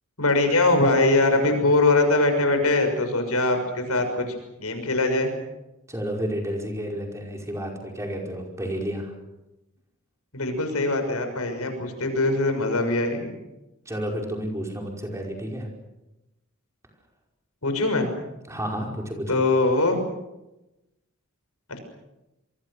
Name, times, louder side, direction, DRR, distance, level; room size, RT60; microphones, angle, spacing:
voice 1, 0.2-4.3 4.6-5.3 10.3-13.3 17.6-18.1 19.3-20.0 21.7-21.8, left 2 dB, 90° left, 6 dB, 6.4 m, -22 dB
voice 2, 5.9-9.1 13.8-15.7 18.5-19.4, equal, 15° right, 1 dB, 5.1 m, -31 dB
27.5 x 23.5 x 6.6 m, 0.97 s
head